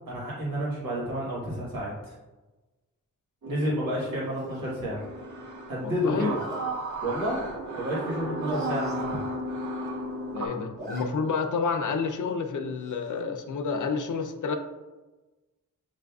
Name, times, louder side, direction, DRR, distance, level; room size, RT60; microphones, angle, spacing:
voice 1, 0.1-2.1 3.5-5.0 5.7-6.4 7.0-7.4 7.7-9.2, equal, 85° right, -6 dB, 1.5 m, -30 dB
sound 1, 3.4-10.5, right 1 dB, 65° right, 0.7 m, -34 dB
Zipper (clothing), 4.3-4.7 6.3-6.7 7.2-7.4 7.7-7.8 8.0-8.1 8.4-9.0 9.4-9.5 9.7-10.2 10.5-11.0 11.4-11.5 12.8-13.2, right 1 dB, 30° right, 0.8 m, -44 dB
voice 2, 5.9-6.3 10.3-14.6, left 5 dB, 65° left, 5 dB, 0.5 m, -29 dB
7.1 x 2.5 x 2.3 m, 1.1 s
wide cardioid pair, 130°, 33 cm